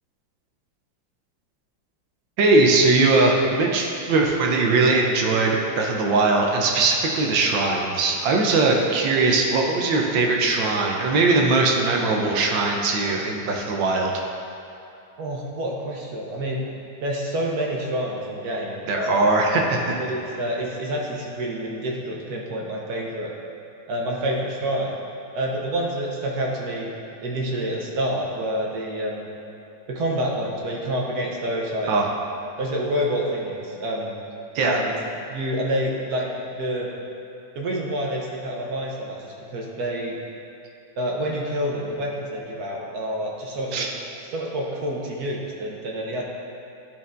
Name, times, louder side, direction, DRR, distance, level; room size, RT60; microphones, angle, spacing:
voice 1, 2.4-14.1 18.9-19.9 31.9-32.1 34.5-34.8 43.7-43.9, right 3 dB, 75° right, 0 dB, 1.4 m, -20 dB
voice 2, 15.2-16.6 17.0-19.3 20.0-23.3 23.9-24.9 25.3-26.9 27.2-29.3 29.9-31.9 32.6-34.2 34.6-34.9 35.3-36.9 37.5-40.2 41.0-43.9 44.3-46.2, equal, 60° right, -2 dB, 1.2 m, -28 dB
11.5 x 4.4 x 2.5 m, 2.8 s
omnidirectional pair, 2.1 m